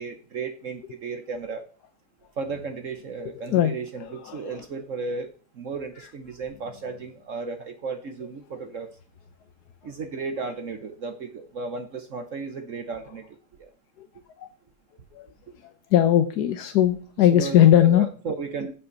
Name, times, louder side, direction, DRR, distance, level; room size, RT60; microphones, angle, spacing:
voice 1, 0.0-1.6 2.4-5.3 5.5-8.9 9.8-13.7 17.2-18.7, right 4 dB, 55° right, 7 dB, 1.3 m, -34 dB
voice 2, 3.4-3.7 4.0-4.5 14.0-14.1 14.4-14.5 15.1-15.3 15.9-18.1, left 11 dB, 85° left, 8 dB, 1.3 m, -19 dB
14.5 x 5.7 x 4.0 m, 0.41 s
omnidirectional pair, 1.7 m